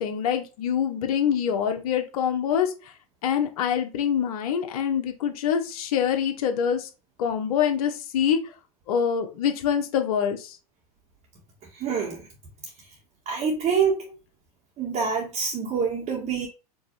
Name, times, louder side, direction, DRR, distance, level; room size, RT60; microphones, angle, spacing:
voice 1, 0.0-2.7 3.2-6.9 7.2-8.4 8.9-10.5, left 8 dB, 70° left, 1.1 m, -25 dB
voice 2, 11.8-12.2 13.2-14.0 14.8-16.5, right 6 dB, 35° right, 1.7 m, -26 dB
5.1 x 3.1 x 3.3 m
hypercardioid pair, 105°, 20 cm